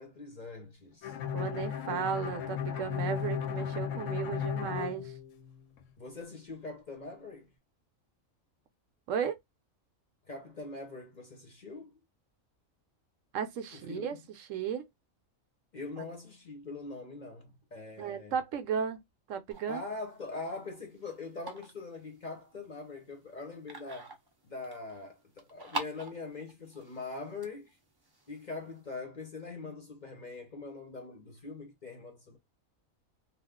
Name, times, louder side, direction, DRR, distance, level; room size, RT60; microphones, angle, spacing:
voice 1, 0.0-1.2 6.0-7.5 10.3-11.9 13.7-14.2 15.7-18.3 19.7-24.1 24.4-27.7 28.3-32.4, left 3 dB, 40° left, 0.7 m, -42 dB
Bowed string instrument, 1.0-5.8, left 8 dB, 70° left, 0.9 m, -35 dB
voice 2, 1.3-5.1 9.1-9.4 13.3-14.2 14.5-14.9 16.0-16.1 18.0-19.0 19.3-19.8, right 8 dB, 75° right, 0.9 m, -34 dB
sound 1, 19.5-28.9, right 2 dB, 30° right, 0.4 m, -46 dB
2.4 x 2.3 x 3.5 m
omnidirectional pair, 1.4 m